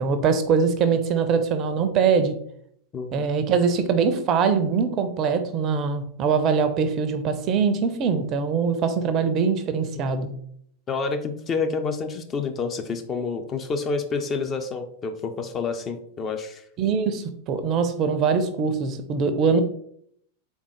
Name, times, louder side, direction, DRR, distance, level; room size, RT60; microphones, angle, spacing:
voice 1, 0.0-2.4 3.1-10.3 16.8-19.6, right 5 dB, 35° right, 9 dB, 0.5 m, -22 dB
voice 2, 2.9-3.3 10.0-10.2 10.9-16.6, left 4 dB, 25° left, 6 dB, 0.5 m, -28 dB
4.1 x 3.6 x 3.0 m, 0.66 s
figure-of-eight pair, 90°, 0 cm